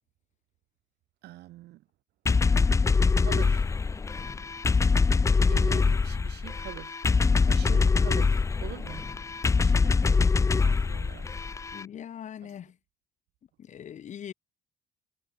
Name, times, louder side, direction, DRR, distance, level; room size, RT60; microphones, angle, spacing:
voice 1, 1.2-1.8 3.2-3.7 5.4-9.1 9.5-10.3 10.6-11.3 12.4-12.6, right 16 dB, 75° right, 4.7 m, -44 dB
sound 1, 2.3-11.8, left 4 dB, 15° left, 0.5 m, -24 dB
voice 2, 7.4-8.2 11.7-12.8 13.6-14.3, left 9 dB, 45° left, 1.0 m, -43 dB
cardioid pair, 110°, 17 cm